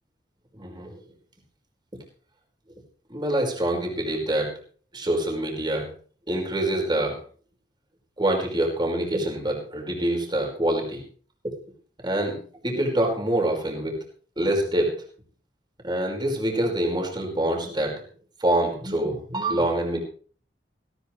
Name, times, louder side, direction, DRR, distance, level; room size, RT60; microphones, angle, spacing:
voice 1, 0.6-1.0 3.1-4.6 4.9-5.9 6.3-7.2 8.2-11.0 12.0-14.0 14.4-15.0 15.8-18.0 18.4-20.0, right 1 dB, 25° right, 1 dB, 5.4 m, -25 dB
19.0 x 17.5 x 3.3 m, 0.43 s
head